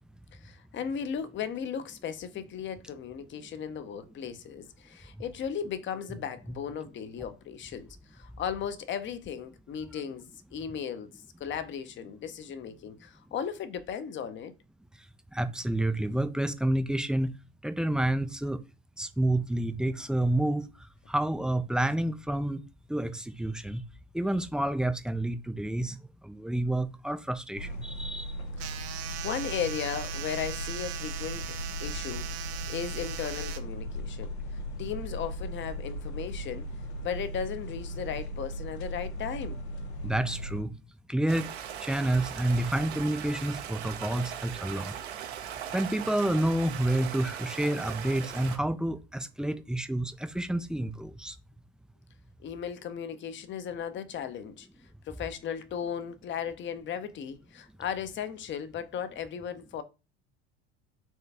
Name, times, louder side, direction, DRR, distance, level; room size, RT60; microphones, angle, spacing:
voice 1, 0.3-14.5 29.2-31.4 31.8-32.3 32.7-34.3 34.8-36.7 37.0-39.6 52.4-54.7 55.1-59.8, left 8 dB, 35° left, 0.7 m, -36 dB
voice 2, 15.3-17.3 17.6-18.6 19.0-20.7 21.1-22.6 22.9-23.8 24.1-26.0 26.2-28.4 40.0-40.7 41.1-41.5 41.8-44.9 45.7-51.4, right 1 dB, 5° right, 0.3 m, -29 dB
sound 1, 27.5-40.6, equal, 85° left, 0.9 m, -37 dB
sound 2, 28.6-33.6, right 11 dB, 50° right, 0.7 m, -40 dB
Stream, 41.3-48.6, right 9 dB, 85° right, 0.9 m, -39 dB
4.5 x 3.3 x 3.4 m
hypercardioid pair, 85°, 32 cm